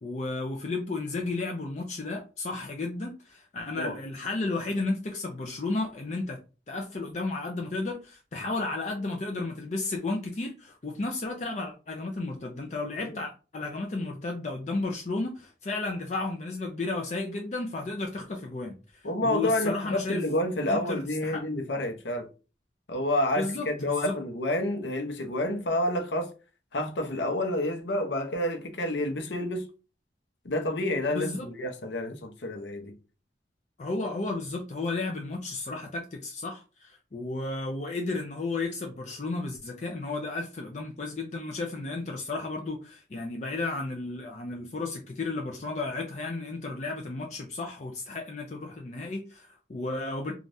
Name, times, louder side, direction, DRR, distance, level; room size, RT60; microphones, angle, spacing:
voice 1, 0.0-6.4 6.7-20.2 20.7-21.4 23.4-24.2 31.1-31.5 33.8-50.3, left 3 dB, 40° left, 0.5 m, -33 dB
voice 2, 19.0-22.3 22.9-26.3 26.7-29.7 30.4-32.9, left 1 dB, 80° left, 0.8 m, -29 dB
3.3 x 2.4 x 2.6 m
head